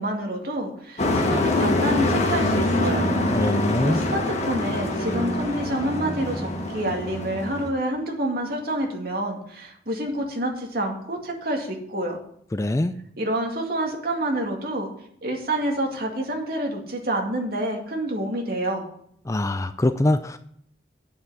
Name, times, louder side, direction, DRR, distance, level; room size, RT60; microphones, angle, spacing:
voice 1, 0.0-3.1 3.8-12.2 13.2-14.9 15.2-18.8, right 1 dB, 55° right, 1 dB, 2.2 m, -28 dB
Truck, 1.0-7.7, left 1 dB, 35° left, 1.3 m, -24 dB
voice 2, 3.3-4.0 12.5-12.9 19.3-20.4, left 1 dB, 15° left, 11 dB, 0.3 m, -23 dB
9.0 x 5.7 x 8.0 m, 0.67 s
head